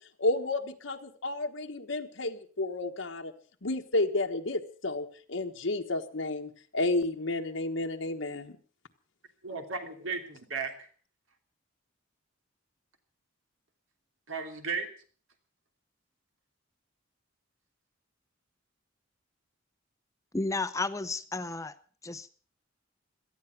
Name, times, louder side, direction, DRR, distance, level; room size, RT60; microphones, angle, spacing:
voice 1, 0.2-3.3 3.6-8.5, left 2 dB, 75° left, 4 dB, 1.3 m, -31 dB
voice 2, 9.4-10.9 14.3-14.9, right 5 dB, 80° right, 5 dB, 3.1 m, -35 dB
voice 3, 20.3-21.7 22.0-22.3, left 3 dB, 15° left, 13 dB, 0.7 m, -32 dB
18.0 x 13.0 x 5.9 m, 0.42 s
head